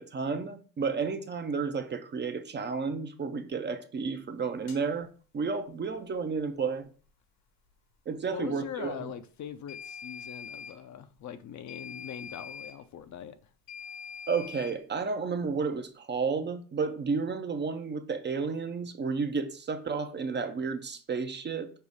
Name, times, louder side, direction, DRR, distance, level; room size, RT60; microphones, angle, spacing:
voice 1, 0.0-5.1 5.3-6.9 8.1-9.0 14.3-21.7, right 5 dB, 30° right, 0.5 m, -32 dB
sound 1, 4.7-4.8 9.7-10.8 11.7-12.8 13.7-14.8, left 6 dB, 75° left, 1.3 m, -43 dB
voice 2, 8.3-13.4, left 9 dB, 50° left, 0.6 m, -42 dB
5.4 x 2.0 x 4.8 m
supercardioid pair, 85°, 37 cm